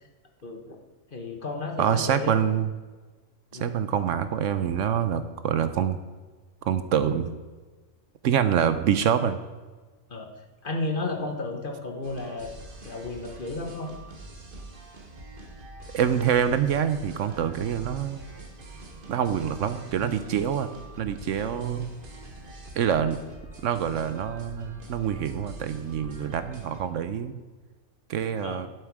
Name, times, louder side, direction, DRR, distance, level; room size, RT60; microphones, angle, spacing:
voice 1, 0.4-0.7 1.1-2.4 3.5-3.7 10.1-10.3 10.6-12.5 12.8-13.9 28.4-28.6, left 2 dB, 40° left, 3 dB, 1.4 m, -33 dB
voice 2, 1.8-2.7 3.5-6.0 6.7-7.3 8.2-9.4 15.9-18.2 19.1-20.7 21.0-21.9 22.8-23.2 23.6-27.3 28.1-28.7, right 8 dB, 70° right, 11 dB, 1.0 m, -26 dB
sound 1, 12.0-26.8, right 2 dB, 40° right, 1.5 m, -44 dB
11.0 x 8.0 x 4.7 m, 1.3 s
omnidirectional pair, 1.4 m